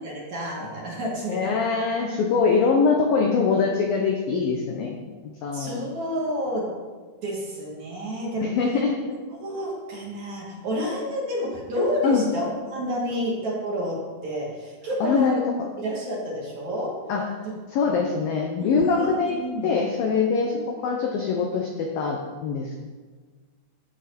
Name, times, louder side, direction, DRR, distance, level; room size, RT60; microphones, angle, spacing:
voice 1, 0.0-1.5 5.5-6.7 7.2-8.6 9.4-12.5 12.7-15.4 15.8-16.9 17.8-17.9 18.6-19.7, equal, 40° right, -4 dB, 3.5 m, -29 dB
voice 2, 1.3-5.0 5.2-5.8 8.4-9.2 12.0-12.2 15.0-15.7 17.1-17.3 17.7-19.4 19.6-22.8, left 5 dB, 75° left, 2 dB, 2.2 m, -23 dB
15.0 x 13.5 x 4.3 m, 1.4 s
omnidirectional pair, 5.6 m